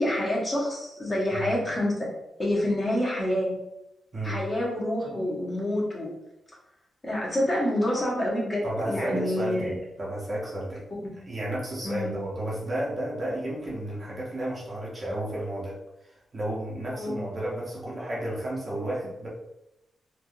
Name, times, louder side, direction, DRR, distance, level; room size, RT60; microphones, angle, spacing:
voice 1, 0.0-2.1 2.4-3.5 4.2-6.1 7.0-9.7 11.0-11.1 11.8-12.1 16.9-17.2, left 1 dB, 25° left, -5 dB, 1.1 m, -27 dB
voice 2, 8.6-10.8 11.3-19.3, right 1 dB, 30° right, -5 dB, 0.8 m, -32 dB
3.4 x 2.5 x 2.6 m, 0.89 s
wide cardioid pair, 125°, 0 cm